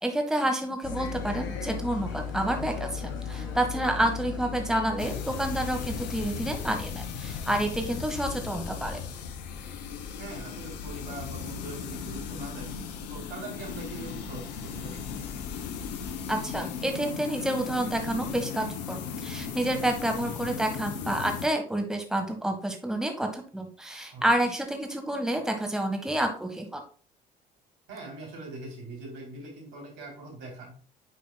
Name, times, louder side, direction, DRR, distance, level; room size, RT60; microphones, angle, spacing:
voice 1, 0.0-9.0 16.3-26.8, right 1 dB, 5° right, 4 dB, 1.3 m, -29 dB
sound 1, 0.8-8.6, left 6 dB, 70° left, 1.4 m, -37 dB
sound 2, 5.0-21.5, left 6 dB, 85° left, 0.7 m, -37 dB
voice 2, 10.2-12.7 13.1-15.0 24.1-24.5 27.9-30.8, right 2 dB, 70° right, -2 dB, 3.3 m, -42 dB
9.0 x 5.3 x 2.2 m, 0.41 s
hypercardioid pair, 55°, 21 cm